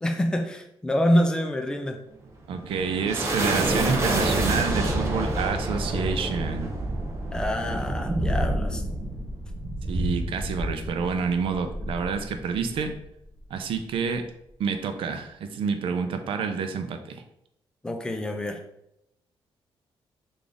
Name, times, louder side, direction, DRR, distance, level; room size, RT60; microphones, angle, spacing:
voice 1, 0.0-2.0 7.3-8.8 17.8-18.6, equal, 10° left, 4 dB, 0.4 m, -26 dB
sound 1, 2.3-13.0, right 1 dB, 30° right, 0.6 m, -28 dB
voice 2, 2.5-6.7 9.9-12.9 13.5-14.2 14.6-17.2, right 5 dB, 70° right, 7 dB, 0.5 m, -28 dB
3.8 x 2.5 x 3.3 m, 0.80 s
wide cardioid pair, 160°, 9 cm